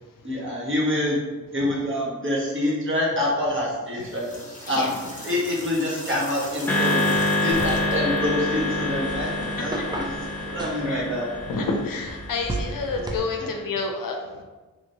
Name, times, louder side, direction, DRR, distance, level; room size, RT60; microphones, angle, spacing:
voice 1, 0.2-1.2 1.5-4.9 5.2-7.2 7.4-11.3 13.4-13.5, left 1 dB, 35° right, -5 dB, 1.3 m, -26 dB
sound 1, 3.9-8.2, left 1 dB, 20° left, 0.9 m, -39 dB
sound 2, 6.7-13.0, left 2 dB, 5° left, 1.1 m, -27 dB
sound 3, 7.5-13.2, right 1 dB, 10° right, 0.4 m, -35 dB
voice 2, 11.5-14.4, left 3 dB, 70° left, 2 dB, 0.6 m, -29 dB
3.0 x 2.8 x 2.7 m, 1.3 s
cardioid pair, 45°, 35 cm